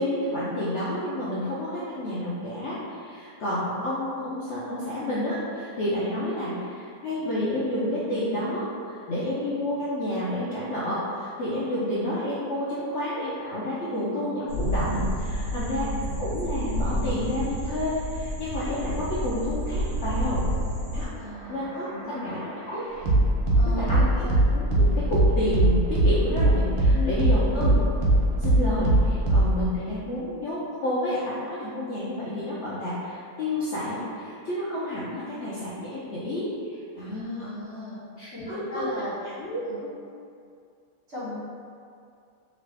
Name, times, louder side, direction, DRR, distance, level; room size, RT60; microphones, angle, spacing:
voice 1, 0.0-20.4 20.9-21.0 21.5-22.9 23.7-24.3 24.5-27.8 28.4-37.5 38.2-38.9 39.4-40.0, left 1 dB, 65° left, -9 dB, 0.7 m, -30 dB
sound 1, 14.5-21.0, equal, 75° right, 1.3 m, -29 dB
voice 2, 15.5-16.2 21.2-21.6 21.9-22.4 23.6-24.4 26.9-27.5 37.0-38.0 38.3-39.1 39.6-39.8 41.1-41.4, left 1 dB, 45° right, -11 dB, 1.3 m, -36 dB
sound 2, 21.0-29.7, right 1 dB, 90° right, 1.3 m, -22 dB
2.9 x 2.6 x 3.2 m, 2.4 s
omnidirectional pair, 1.6 m